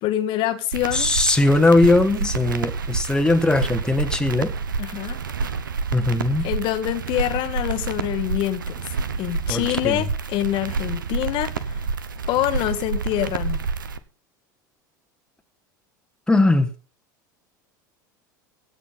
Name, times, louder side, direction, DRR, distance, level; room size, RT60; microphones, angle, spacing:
voice 1, 0.0-1.1 4.8-5.2 6.4-8.8 9.2-11.8 12.3-13.6, left 14 dB, 50° left, 1.4 m, -25 dB
sound 1, 0.7-14.0, right 4 dB, 85° right, 1.0 m, -28 dB
voice 2, 0.9-4.5 5.9-6.4 9.5-10.0 16.3-16.7, left 2 dB, 5° left, 1.4 m, -19 dB
16.0 x 6.9 x 5.6 m
hypercardioid pair, 80°, 11 cm